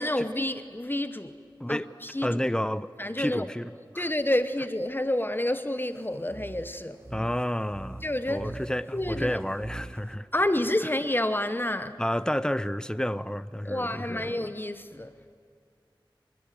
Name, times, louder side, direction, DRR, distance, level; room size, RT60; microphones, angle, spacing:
voice 1, 0.0-1.4 1.7-2.4 3.0-3.5 3.9-7.1 8.0-8.5 8.9-9.4 10.3-12.0 13.6-15.3, left 1 dB, 25° left, 1.1 m, -29 dB
voice 2, 2.2-2.9 3.2-4.1 7.1-10.3 12.0-14.3, equal, 10° left, 0.8 m, -30 dB
sound 1, 6.2-10.2, right 2 dB, 30° right, 0.8 m, -42 dB
27.0 x 22.0 x 9.2 m
wide cardioid pair, 60°, 9 cm